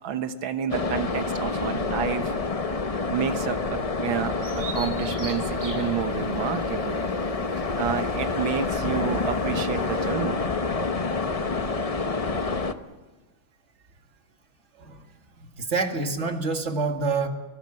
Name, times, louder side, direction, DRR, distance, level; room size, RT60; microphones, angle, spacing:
voice 1, 0.0-2.4 3.1-7.0 7.8-10.4, right 8 dB, 85° right, 8 dB, 2.1 m, -30 dB
sound 1, 0.7-12.7, left 3 dB, 40° left, 0.5 m, -28 dB
Bird vocalization bird call bird song, 4.4-10.1, right 2 dB, 20° right, 4.7 m, -43 dB
voice 2, 15.4-17.3, right 4 dB, 35° right, 4 dB, 2.3 m, -27 dB
23.5 x 19.5 x 7.8 m, 1.2 s
omnidirectional pair, 2.1 m